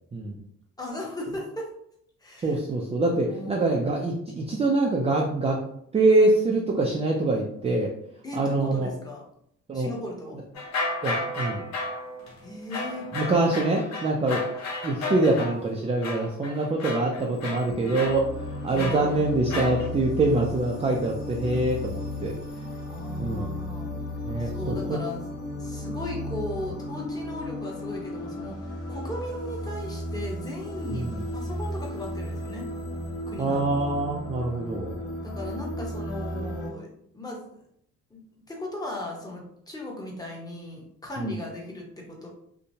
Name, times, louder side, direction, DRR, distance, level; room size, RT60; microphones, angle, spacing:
voice 1, 0.8-1.6 2.2-2.6 3.3-3.7 8.2-9.2 9.7-10.4 12.4-13.1 18.7-19.2 22.9-23.9 24.4-25.2 25.6-28.6 28.9-31.1 31.3-32.7 33.3-33.6 35.2-36.9 37.1-37.6 38.1-38.2 38.5-42.3, left 1 dB, 10° left, -2 dB, 0.9 m, -37 dB
voice 2, 2.4-5.6 5.9-7.9 8.4-8.9 9.7-9.9 11.0-11.7 13.1-14.4 14.8-22.3 23.2-23.5 24.3-25.0 30.9-31.2 33.4-34.9 41.2-41.3, right 2 dB, 20° right, 0 dB, 0.4 m, -25 dB
sound 1, 10.5-15.6 16.0-19.9, left 2 dB, 65° left, 0.7 m, -33 dB
sound 2, 17.2-36.7, left 1 dB, 50° left, 1.2 m, -35 dB
2.8 x 2.1 x 2.7 m, 0.69 s
cardioid pair, 90°, 30 cm